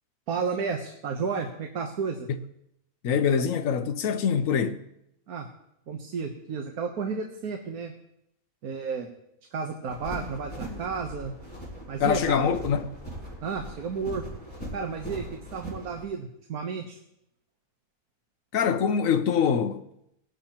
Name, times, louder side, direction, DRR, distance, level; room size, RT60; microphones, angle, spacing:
voice 1, 0.3-2.3 5.3-5.5 5.9-7.9 8.6-9.1 9.5-11.3 11.9-12.5 13.4-14.2 14.7-17.0, right 5 dB, 90° right, 1.5 m, -32 dB
voice 2, 3.0-4.8 12.0-12.9 18.5-19.8, left 7 dB, 70° left, 1.2 m, -24 dB
sound 1, 9.9-16.0, equal, 5° left, 5.3 m, -40 dB
20.5 x 11.0 x 3.0 m
omnidirectional pair, 1.5 m